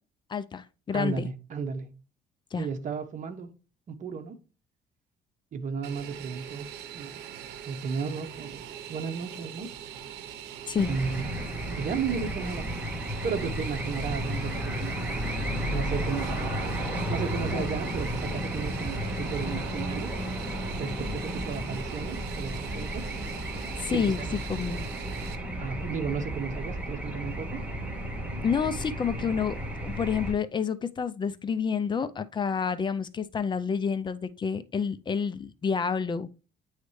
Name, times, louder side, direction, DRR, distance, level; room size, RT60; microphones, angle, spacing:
voice 1, 0.3-1.3 2.5-2.7 10.7-10.9 17.5-17.7 23.8-24.2 24.5-24.8 28.4-36.3, left 6 dB, 25° left, 0.5 m, -29 dB
voice 2, 0.9-1.9 2.5-3.5 3.9-4.4 5.5-6.7 6.9-7.2 7.6-9.7 10.9-11.3 11.7-12.7 13.2-15.3 15.7-20.1 20.8-23.1 23.9-24.4 25.6-27.6, right 6 dB, 50° right, 1.0 m, -34 dB
Fixed-wing aircraft airplane, 5.8-25.3, right 9 dB, 85° right, 0.8 m, -42 dB
sound 1, 10.8-30.3, equal, 10° right, 1.5 m, -33 dB
9.2 x 3.2 x 3.1 m
cardioid pair, 110°, 17 cm